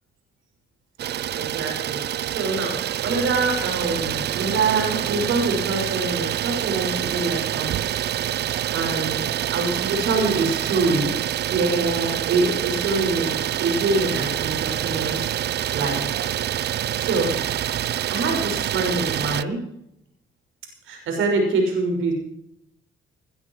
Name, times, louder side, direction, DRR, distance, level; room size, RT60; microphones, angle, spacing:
Idling, 1.0-19.4, right 11 dB, 60° right, 0.6 m, -26 dB
voice 1, 1.3-7.8 8.7-9.3 9.5-11.1 11.4-15.3 15.7-16.2 17.0-17.4 18.1-19.7 20.8-22.1, right 3 dB, 80° right, 3 dB, 6.4 m, -25 dB
20.5 x 12.5 x 4.9 m, 0.74 s
cardioid pair, 90°, 20 cm